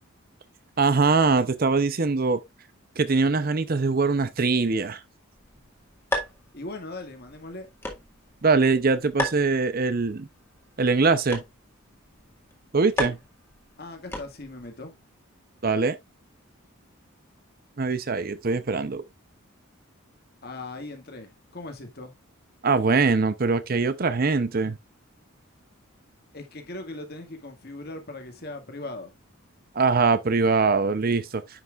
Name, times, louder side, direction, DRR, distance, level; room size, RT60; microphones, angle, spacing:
voice 1, 0.8-2.4 3.0-5.0 8.4-10.3 10.8-11.4 12.7-13.2 15.6-16.0 17.8-19.0 22.6-24.8 29.7-31.6, right 4 dB, 45° right, 0.6 m, -22 dB
sound 1, 5.4-14.7, left 1 dB, 10° left, 1.7 m, -36 dB
voice 2, 6.5-7.7 13.0-13.1 13.8-14.9 20.4-22.1 26.3-29.1, left 2 dB, 45° left, 1.8 m, -39 dB
9.7 x 5.8 x 2.4 m
head